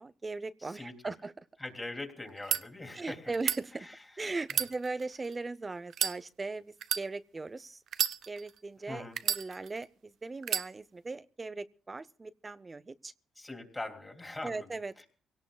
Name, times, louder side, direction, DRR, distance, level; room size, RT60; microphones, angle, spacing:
voice 1, 0.0-1.3 2.9-3.9 4.2-7.8 8.3-13.1 14.4-14.9, right 3 dB, 25° right, 15 dB, 0.7 m, -39 dB
voice 2, 0.6-0.9 1.6-3.3 3.8-4.0 4.5-4.7 8.9-9.2 13.4-14.7, left 2 dB, 15° left, 4 dB, 3.1 m, -42 dB
sound 1, 2.3-2.6 3.3-3.6 4.4-5.3 5.9-6.2 6.8-7.0 7.9-8.6 9.2-9.8 10.4-10.7, right 9 dB, 70° right, 0.8 m, -31 dB
24.0 x 18.0 x 2.3 m, 0.41 s
cardioid pair, 90°, 0 cm